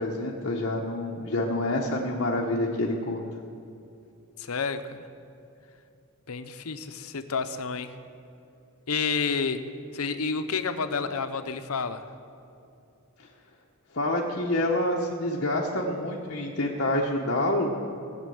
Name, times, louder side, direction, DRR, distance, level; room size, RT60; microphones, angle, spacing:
voice 1, 0.0-3.3 13.2-13.3 13.9-17.7, left 1 dB, 55° left, -3 dB, 1.1 m, -27 dB
voice 2, 4.4-5.1 6.3-7.9 8.9-9.7 9.9-12.0, left 5 dB, 80° left, 10 dB, 0.8 m, -30 dB
17.5 x 7.6 x 7.8 m, 2.7 s
head